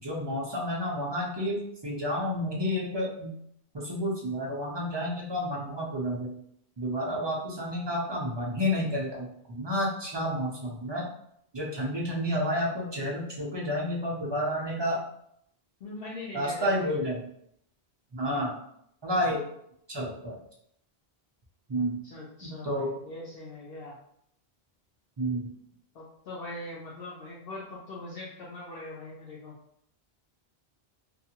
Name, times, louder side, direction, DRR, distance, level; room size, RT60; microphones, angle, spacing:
voice 1, 0.0-3.3 3.7-6.3 6.8-11.0 11.5-15.0 16.3-17.2 18.1-18.6 19.0-19.4 19.9-20.4 21.7-22.0 22.4-22.9 25.2-25.5, equal, 40° right, -3 dB, 0.4 m, -30 dB
voice 2, 15.8-17.0 21.8-24.0 25.9-29.5, left 2 dB, 70° left, -5 dB, 0.8 m, -41 dB
2.5 x 2.4 x 2.8 m, 0.72 s
omnidirectional pair, 1.1 m